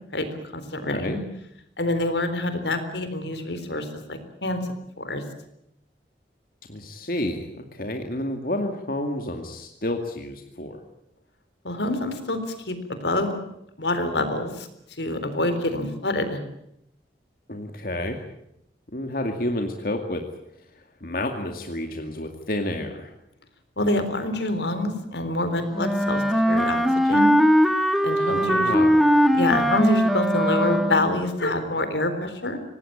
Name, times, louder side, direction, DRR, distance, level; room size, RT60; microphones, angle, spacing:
voice 1, 0.1-1.2 1.8-4.6 5.0-5.2 11.6-13.4 13.8-14.7 15.0-16.4 23.8-27.3 28.0-28.9 29.3-32.6, left 1 dB, 80° left, 10 dB, 3.9 m, -26 dB
voice 2, 0.8-1.1 6.7-10.8 17.5-18.2 18.9-20.2 21.0-23.1 28.3-29.1, left 1 dB, 55° left, 4 dB, 2.2 m, -30 dB
Wind instrument woodwind instrument, 25.7-31.2, equal, ahead, 1.7 m, -20 dB
25.5 x 19.0 x 8.8 m, 0.78 s
head